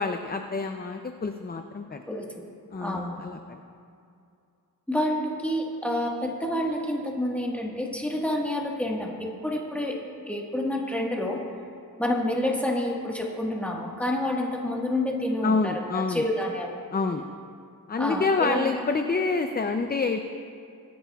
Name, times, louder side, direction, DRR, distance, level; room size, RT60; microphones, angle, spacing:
voice 1, 0.0-2.0 2.7-3.6 15.4-16.2 16.9-17.3 17.9-20.2, left 4 dB, 25° left, 6 dB, 0.4 m, -27 dB
voice 2, 2.1-2.5 2.8-3.2 4.9-10.0 10.3-11.4 12.0-16.8 18.0-18.7, left 1 dB, 5° left, -2 dB, 1.5 m, -28 dB
23.5 x 10.0 x 2.3 m, 2.4 s
wide cardioid pair, 120°, 37 cm